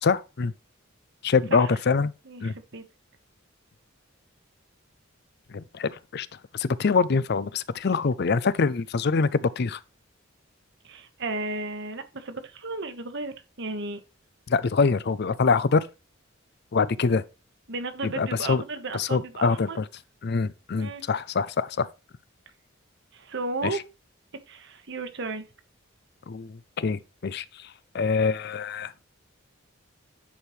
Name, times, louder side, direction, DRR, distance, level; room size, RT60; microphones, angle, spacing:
voice 1, 0.0-0.5 1.2-2.1 2.4-2.5 5.5-6.3 6.5-9.8 14.5-15.8 16.7-17.2 18.0-18.6 18.9-19.8 20.2-21.9 23.6-23.8 26.3-27.7 27.9-28.9, left 4 dB, 55° left, 0.5 m, -24 dB
voice 2, 2.2-2.8 10.8-14.0 17.7-19.8 20.8-21.0 23.1-23.8 24.5-25.5, right 3 dB, 60° right, 1.2 m, -34 dB
10.0 x 4.6 x 3.2 m
head